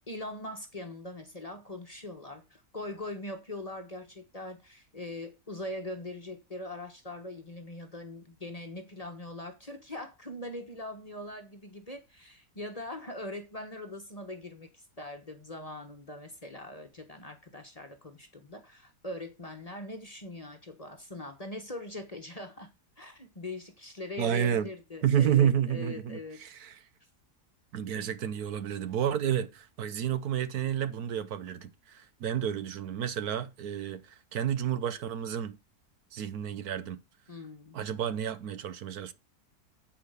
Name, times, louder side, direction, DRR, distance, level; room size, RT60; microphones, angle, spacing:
voice 1, 0.1-22.7 23.0-26.4 37.3-37.9, left 1 dB, 25° left, 1.1 m, -41 dB
voice 2, 24.2-24.7 25.0-26.7 27.7-35.6 36.1-37.0 37.7-39.1, right 9 dB, 70° right, 1.3 m, -30 dB
8.7 x 5.0 x 6.5 m
omnidirectional pair, 1.7 m